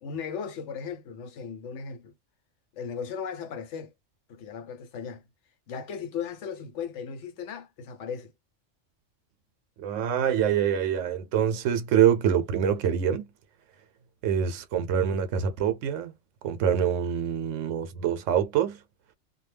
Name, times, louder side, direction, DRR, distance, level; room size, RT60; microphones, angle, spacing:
voice 1, 0.0-2.1 2.7-3.9 4.3-5.2 5.7-8.3, left 6 dB, 75° left, 1.0 m, -36 dB
voice 2, 9.8-13.3 14.2-16.1 16.4-18.8, right 9 dB, 85° right, 0.9 m, -25 dB
2.2 x 2.2 x 3.2 m
omnidirectional pair, 1.3 m